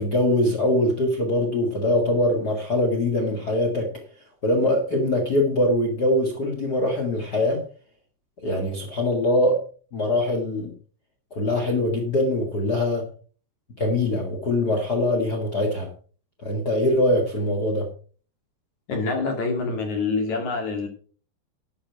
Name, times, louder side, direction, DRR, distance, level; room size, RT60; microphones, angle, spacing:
voice 1, 0.0-3.9 4.4-7.6 8.4-9.6 9.9-10.7 11.3-13.1 13.8-15.9 16.4-17.9, left 1 dB, 80° left, 2 dB, 0.8 m, -23 dB
voice 2, 18.9-20.9, left 4 dB, 50° left, 4 dB, 3.0 m, -26 dB
12.0 x 8.8 x 4.8 m, 0.41 s
omnidirectional pair, 5.2 m